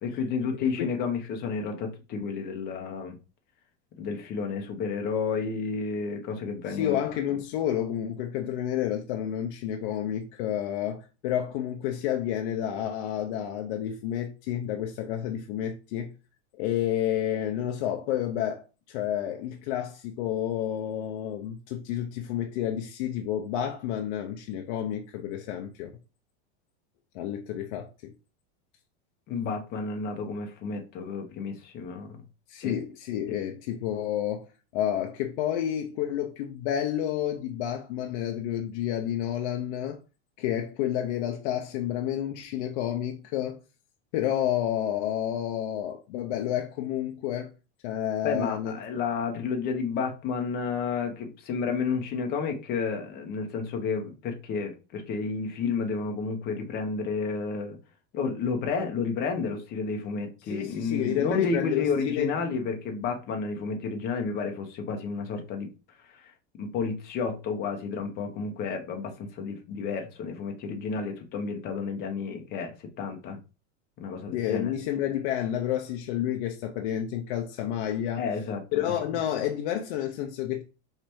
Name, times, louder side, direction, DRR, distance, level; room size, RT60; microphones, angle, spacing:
voice 1, 0.0-3.1 4.0-7.1 29.3-32.1 32.6-32.7 33.3-33.4 48.2-57.8 58.1-65.7 66.1-73.4 74.0-74.7 78.2-78.8, left 5 dB, 30° left, 0.8 m, -31 dB
voice 2, 6.7-16.1 16.5-25.9 27.1-28.1 32.5-34.5 34.7-40.0 40.4-43.6 44.1-47.5 47.8-48.8 60.5-62.3 74.3-78.2 78.7-80.6, left 11 dB, 50° left, 0.5 m, -30 dB
4.9 x 3.2 x 3.0 m
supercardioid pair, 155°, 34 cm